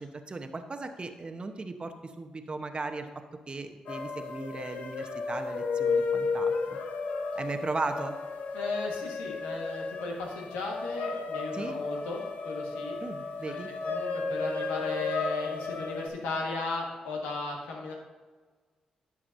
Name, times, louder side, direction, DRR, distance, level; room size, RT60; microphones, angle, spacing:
voice 1, 0.0-3.1 3.5-6.5 7.4-8.2 11.5-11.8 13.0-13.7, right 3 dB, 35° right, 6 dB, 1.0 m, -37 dB
sound 1, 3.9-16.1, left 4 dB, 70° left, 0.8 m, -33 dB
voice 2, 8.5-13.0 13.5-13.6 13.8-17.9, left 3 dB, 90° left, -1 dB, 1.6 m, -36 dB
11.5 x 7.2 x 2.7 m, 1.4 s
supercardioid pair, 45°, 3 cm